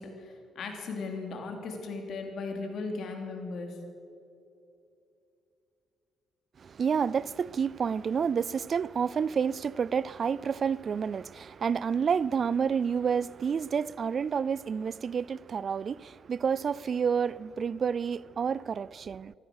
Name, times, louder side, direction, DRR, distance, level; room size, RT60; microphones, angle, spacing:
voice 1, 0.0-3.7, left 3 dB, 65° left, 3.2 m, -37 dB
voice 2, 6.6-19.3, right 6 dB, 50° right, 0.3 m, -29 dB
15.0 x 15.0 x 6.4 m
cardioid pair, 90°, 0 cm